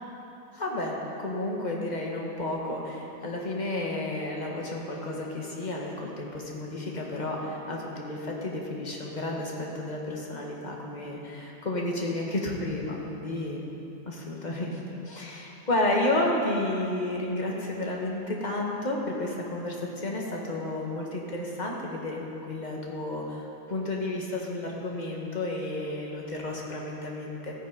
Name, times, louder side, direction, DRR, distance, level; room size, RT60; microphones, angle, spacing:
voice 1, 0.5-13.6 14.0-14.8 15.0-23.4 23.7-27.5, left 1 dB, 25° left, -2 dB, 1.5 m, -31 dB
14.5 x 9.5 x 5.2 m, 2.9 s
omnidirectional pair, 2.0 m